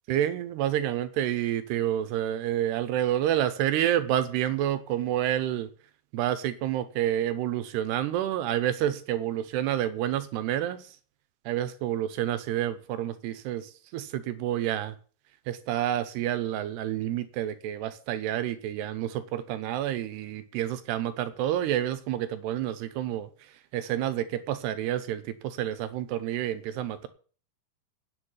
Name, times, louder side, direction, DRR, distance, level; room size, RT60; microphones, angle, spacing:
voice 1, 0.1-5.7 6.1-11.0 11.5-15.0 15.5-27.1, right 12 dB, 80° right, 3.0 m, -29 dB
9.9 x 7.2 x 8.9 m
omnidirectional pair, 4.9 m